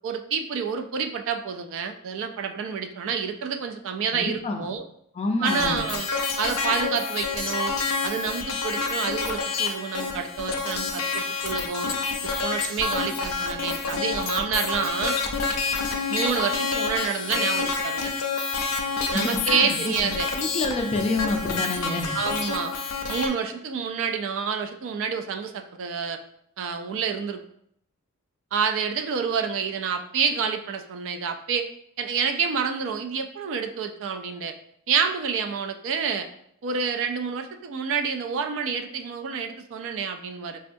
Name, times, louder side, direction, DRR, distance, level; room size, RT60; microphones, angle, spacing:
voice 1, 0.0-4.8 5.4-6.1 6.4-7.7 8.0-11.9 12.2-15.2 16.1-18.1 19.1-20.3 22.1-22.7 23.1-26.2 26.6-27.4 28.5-31.7 32.0-34.5 34.9-36.3 36.6-40.6, right 6 dB, 60° right, 7 dB, 0.3 m, -28 dB
voice 2, 4.1-4.7 5.2-5.8 19.2-19.8 20.0-22.2, left 2 dB, 30° left, 3 dB, 0.4 m, -28 dB
sound 1, 5.4-23.3, left 4 dB, 85° left, 0.4 m, -28 dB
4.3 x 2.3 x 2.5 m, 0.71 s
head